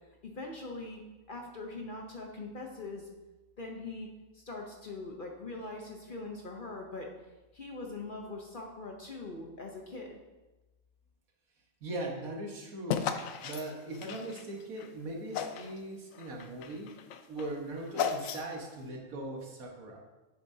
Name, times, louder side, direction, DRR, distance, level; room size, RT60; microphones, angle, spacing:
voice 1, 0.2-1.0 1.3-3.1 3.6-4.1 4.3-7.1 7.5-10.2, left 3 dB, 45° left, 1 dB, 0.8 m, -42 dB
voice 2, 11.8-13.1 13.4-16.9 17.3-20.0, right 1 dB, 80° right, 0 dB, 1.7 m, -40 dB
sound 1, 12.9-14.9 15.3-15.8 16.1-18.7, left 8 dB, 75° left, 0.9 m, -35 dB
8.2 x 7.0 x 2.7 m, 1.1 s
omnidirectional pair, 1.5 m